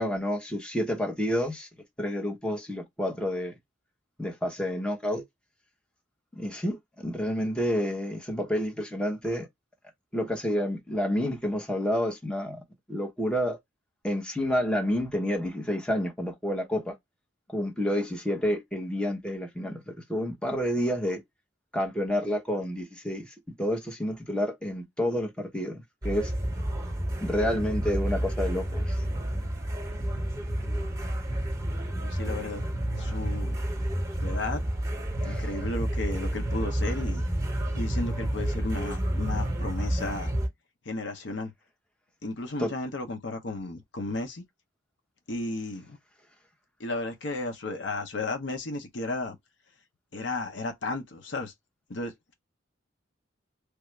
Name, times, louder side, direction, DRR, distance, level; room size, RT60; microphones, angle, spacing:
voice 1, 0.0-1.7 2.0-3.5 4.2-5.2 6.3-9.5 10.1-12.6 12.9-13.6 14.0-16.9 17.5-21.2 21.7-26.3 27.2-29.0 35.2-35.5 42.6-42.7, equal, 5° left, 0.9 m, -29 dB
sound 1, 26.0-40.5, right 1 dB, 20° right, 1.3 m, -30 dB
voice 2, 32.0-32.6 33.0-33.6 34.2-34.6 35.2-37.2 37.8-40.3 40.8-41.5 42.2-44.4 45.3-46.0 46.8-49.4 50.1-51.5 51.9-52.3, left 2 dB, 65° left, 0.8 m, -34 dB
3.3 x 2.5 x 3.1 m
head